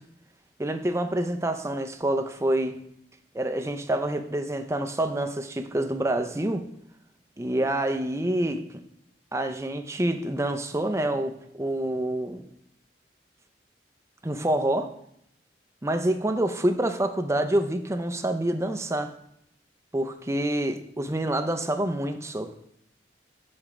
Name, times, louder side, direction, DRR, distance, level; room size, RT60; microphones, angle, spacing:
voice 1, 0.6-2.8 3.3-6.7 7.4-8.6 9.3-12.4 14.2-14.9 15.8-19.1 19.9-22.7, right 1 dB, 15° right, 7 dB, 0.5 m, -27 dB
6.9 x 4.3 x 6.0 m, 0.74 s
head